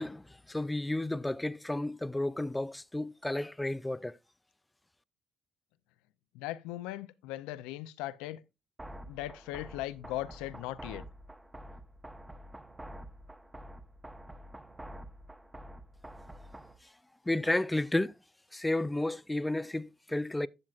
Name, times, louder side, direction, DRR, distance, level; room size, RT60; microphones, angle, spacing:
voice 1, 0.0-4.2 17.3-18.1 18.5-20.5, left 1 dB, 10° left, 0.4 m, -32 dB
voice 2, 6.3-8.4 9.1-11.0, left 15 dB, 80° left, 0.4 m, -38 dB
sound 1, 8.8-16.8, right 1 dB, 15° right, 0.9 m, -48 dB
12.0 x 7.5 x 2.4 m
hypercardioid pair, 60°, 0 cm